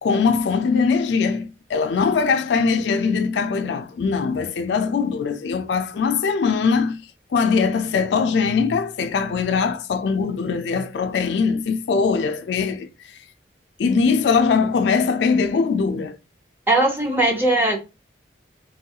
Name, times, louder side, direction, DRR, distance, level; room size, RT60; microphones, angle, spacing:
voice 1, 0.0-7.0 7.3-12.9 13.8-16.2, left 5 dB, 70° left, 0.3 m, -21 dB
voice 2, 16.7-17.8, right 2 dB, 10° right, 0.6 m, -19 dB
3.0 x 2.3 x 2.7 m
head